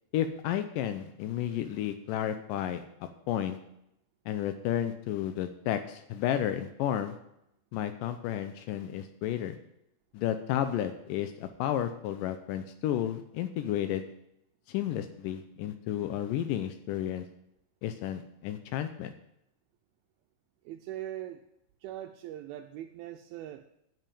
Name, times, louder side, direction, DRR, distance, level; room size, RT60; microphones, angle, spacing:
voice 1, 0.1-3.6 4.3-7.2 7.7-9.6 10.1-14.0 14.7-17.3 17.8-19.1, left 11 dB, 85° left, 9 dB, 2.0 m, -32 dB
voice 2, 20.6-21.4 21.8-23.6, right 12 dB, 80° right, 5 dB, 2.3 m, -41 dB
7.8 x 7.7 x 8.7 m, 0.79 s
omnidirectional pair, 4.5 m